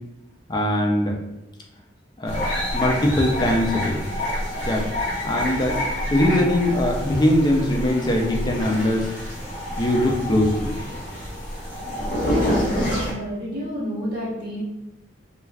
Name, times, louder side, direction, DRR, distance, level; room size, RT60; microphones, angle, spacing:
voice 1, 0.5-1.2 2.2-2.4 2.7-4.0 4.7-4.8 5.2-5.8 6.1-9.1 9.8-10.8, left 1 dB, 20° left, 0 dB, 0.4 m, -21 dB
sound 1, 2.2-13.1, equal, 50° left, 1.2 m, -27 dB
voice 2, 12.2-14.6, left 1 dB, 50° right, -10 dB, 1.0 m, -30 dB
2.3 x 2.3 x 3.2 m, 0.96 s
head